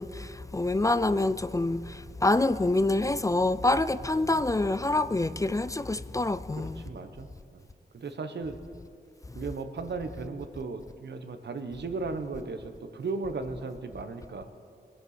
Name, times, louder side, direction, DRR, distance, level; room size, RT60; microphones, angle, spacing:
voice 1, 0.0-6.8, left 2 dB, 20° left, 0.3 m, -26 dB
voice 2, 6.6-7.3 7.5-7.6 7.9-8.6 9.3-12.6 12.9-14.4, right 4 dB, 75° right, 1.0 m, -36 dB
21.0 x 8.8 x 4.2 m
wide cardioid pair, 80°, 18 cm